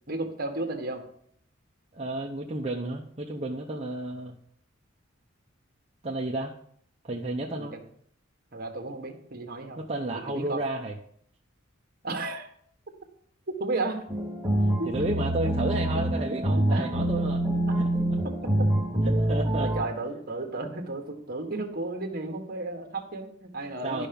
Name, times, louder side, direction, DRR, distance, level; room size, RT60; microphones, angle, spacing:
voice 1, 0.1-1.0 7.5-7.8 8.5-9.8 10.3-10.6 12.0-12.5 13.6-14.0 14.8-14.9 16.3-16.9 17.7-17.8 18.2-18.9 19.6-24.1, right 2 dB, 45° right, 4 dB, 1.6 m, -33 dB
voice 2, 1.9-4.4 6.0-6.5 7.0-7.7 9.8-11.0 14.6-17.4 17.7-17.9 19.0-19.7 23.6-24.1, right 2 dB, 30° right, -1 dB, 0.8 m, -32 dB
sound 1, 14.1-19.8, right 1 dB, 10° right, 1.5 m, -26 dB
12.0 x 5.8 x 5.3 m, 0.65 s
head